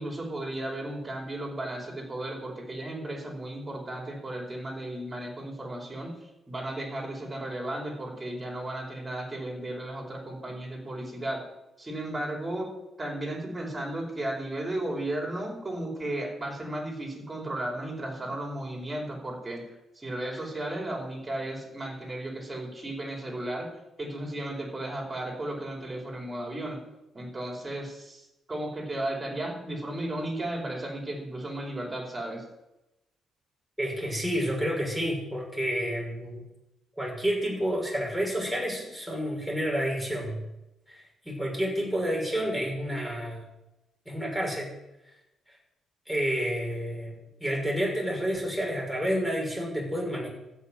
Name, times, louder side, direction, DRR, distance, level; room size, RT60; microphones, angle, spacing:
voice 1, 0.0-11.4 11.8-12.7 13.0-19.6 19.9-23.7 24.0-26.8 27.1-32.4, right 1 dB, 25° right, -1 dB, 4.9 m, -34 dB
voice 2, 33.8-36.4 37.0-40.4 40.9-43.4 44.0-44.7 46.1-50.3, equal, ahead, -3 dB, 6.4 m, -29 dB
13.0 x 6.4 x 9.2 m, 0.93 s
cardioid pair, 90°, 0 cm